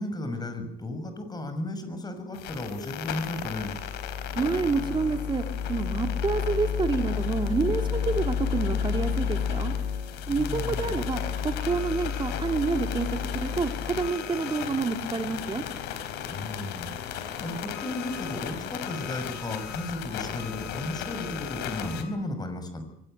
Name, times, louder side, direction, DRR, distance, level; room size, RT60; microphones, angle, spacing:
voice 1, 0.0-3.8 10.3-11.0 16.3-22.8, left 1 dB, 25° left, 8 dB, 6.2 m, -34 dB
sound 1, 2.3-22.0, left 7 dB, 90° left, 4.0 m, -32 dB
voice 2, 4.4-5.4 5.7-9.7 10.3-13.1 13.3-15.6, right 4 dB, 30° right, 6 dB, 2.4 m, -28 dB
24.0 x 18.5 x 9.1 m, 0.78 s
cardioid pair, 110°, 17 cm